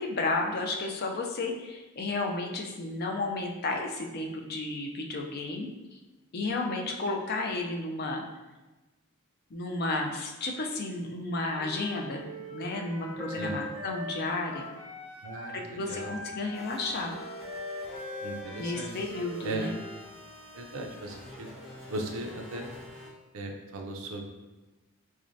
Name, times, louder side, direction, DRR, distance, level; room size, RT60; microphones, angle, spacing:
voice 1, 0.0-5.7 6.3-8.2 9.5-12.2 12.5-14.6 15.5-17.2 18.6-19.7, left 2 dB, 45° left, 2 dB, 0.4 m, -32 dB
Wind instrument woodwind instrument, 11.5-15.6 15.8-20.0, left 1 dB, 20° right, 0.8 m, -42 dB
voice 2, 13.3-13.6 15.2-16.2 18.2-18.9 19.4-19.7 20.5-21.5 21.9-22.7 23.3-24.2, right 2 dB, 70° right, 3 dB, 0.5 m, -37 dB
sound 1, 16.5-23.1, left 1 dB, 25° left, 1.4 m, -46 dB
3.6 x 3.2 x 2.6 m, 1.1 s
head